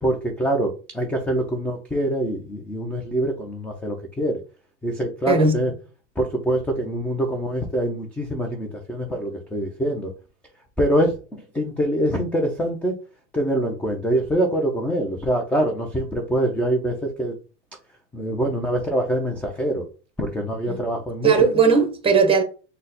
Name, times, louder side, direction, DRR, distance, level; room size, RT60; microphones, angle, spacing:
voice 1, 0.0-4.4 4.8-5.7 6.2-10.1 10.8-12.9 13.3-17.4 18.1-19.8 20.2-21.3, right 1 dB, 5° left, 0.4 m, -24 dB
voice 2, 5.3-5.6 20.7-20.8 21.2-22.4, right 5 dB, 15° right, 1.0 m, -18 dB
3.9 x 2.2 x 3.9 m
supercardioid pair, 125°, 35 cm